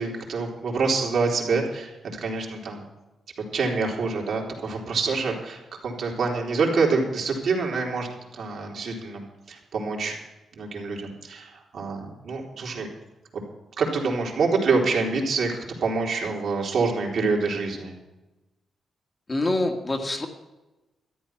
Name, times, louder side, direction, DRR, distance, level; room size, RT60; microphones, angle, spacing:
voice 1, 0.0-2.8 3.5-10.2 10.5-12.9 13.3-13.4 13.8-18.0, right 4 dB, 60° right, -1 dB, 3.5 m, -26 dB
voice 2, 19.3-20.3, left 2 dB, 20° left, 3 dB, 1.5 m, -25 dB
13.0 x 10.5 x 5.9 m, 1.1 s
cardioid pair, 130°, 0 cm